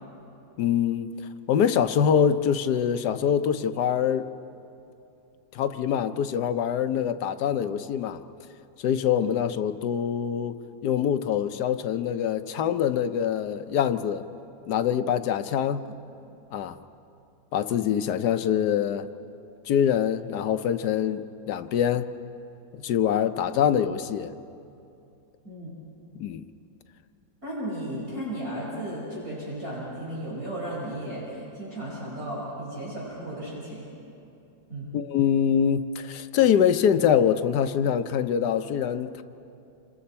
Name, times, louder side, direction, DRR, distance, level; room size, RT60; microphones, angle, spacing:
voice 1, 0.6-1.1 1.5-4.3 5.5-8.2 8.8-10.5 10.8-14.2 14.7-15.9 16.5-16.8 17.5-19.1 19.7-22.1 22.7-24.3 26.1-26.5 34.9-39.2, left 8 dB, 65° left, 10 dB, 1.2 m, -24 dB
voice 2, 25.4-25.7 27.4-33.9 34.7-34.9, right 1 dB, 45° right, -7 dB, 5.7 m, -34 dB
28.5 x 26.0 x 4.3 m, 2.7 s
omnidirectional pair, 2.1 m